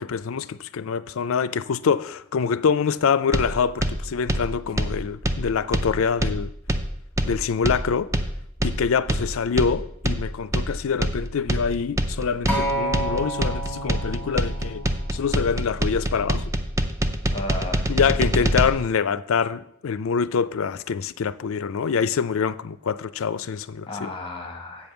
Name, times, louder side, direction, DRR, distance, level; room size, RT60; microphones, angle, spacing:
voice 1, 0.0-6.5 7.2-8.1 8.6-14.8 15.1-16.5 17.9-24.1, left 6 dB, 65° left, 0.4 m, -25 dB
sound 1, 3.3-18.7, right 1 dB, 15° right, 0.5 m, -25 dB
Acoustic guitar, 12.5-16.7 17.6-17.7, right 1 dB, 10° left, 2.0 m, -31 dB
voice 2, 17.3-18.5 23.9-24.9, left 2 dB, 25° left, 1.2 m, -35 dB
8.3 x 5.4 x 7.0 m
head